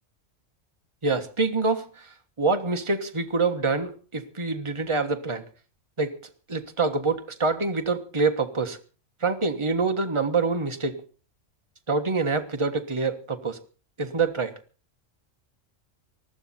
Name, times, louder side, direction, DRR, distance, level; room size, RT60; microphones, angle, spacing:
voice 1, 1.0-2.1 2.4-5.4 6.0-6.1 6.5-8.8 9.2-11.0 11.9-13.6 14.0-14.5, right 4 dB, 25° right, 6 dB, 1.5 m, -26 dB
19.5 x 14.0 x 4.3 m, 0.37 s
omnidirectional pair, 1.3 m